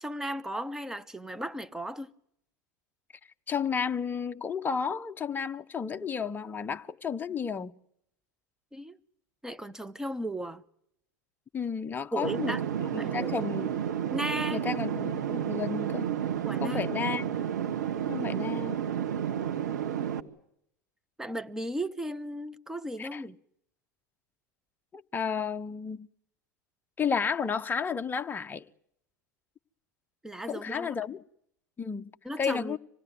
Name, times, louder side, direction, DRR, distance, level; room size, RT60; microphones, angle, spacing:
voice 1, 0.0-2.1 8.7-9.0 9.4-10.6 12.1-13.5 14.1-14.7 16.4-16.8 21.2-23.4 30.2-30.9 32.2-32.8, right 1 dB, 5° right, 1.1 m, -36 dB
voice 2, 3.5-7.7 11.5-12.6 12.9-13.9 14.5-16.1 16.6-17.3 18.1-18.8 23.0-23.2 24.9-26.1 27.0-28.6 30.5-31.2 31.8-32.8, left 6 dB, 20° left, 0.9 m, -32 dB
sound 1, 12.2-20.2, right 9 dB, 70° right, 1.5 m, -31 dB
26.0 x 18.0 x 9.5 m
figure-of-eight pair, 90°, 10 cm